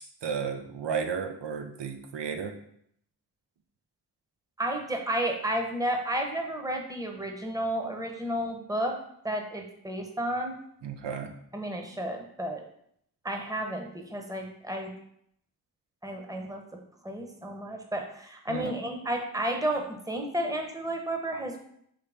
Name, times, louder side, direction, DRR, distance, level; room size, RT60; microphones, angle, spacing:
voice 1, 0.2-2.5 10.8-11.3 18.5-18.7, right 6 dB, 80° right, 6 dB, 0.7 m, -33 dB
voice 2, 4.6-8.9 9.2-10.6 11.5-12.6 13.2-14.9 16.0-16.6 17.0-21.6, right 1 dB, 10° right, 3 dB, 0.9 m, -32 dB
5.0 x 2.8 x 3.4 m, 0.70 s
cardioid pair, 40°, 42 cm